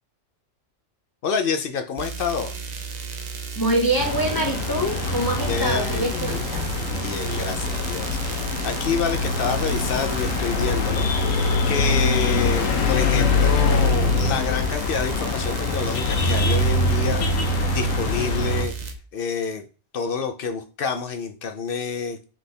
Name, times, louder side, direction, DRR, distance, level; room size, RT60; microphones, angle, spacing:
voice 1, 1.2-2.5 5.5-11.1 11.7-18.7 19.1-19.6 19.9-22.2, left 5 dB, 65° left, 7 dB, 0.6 m, -28 dB
sound 1, 2.0-19.0, right 5 dB, 55° right, 0.4 m, -34 dB
voice 2, 3.6-6.7, right 1 dB, 20° left, 1 dB, 0.6 m, -25 dB
sound 2, 4.0-18.7, left 3 dB, 85° left, 1.1 m, -23 dB
4.1 x 3.5 x 3.3 m, 0.36 s
omnidirectional pair, 1.3 m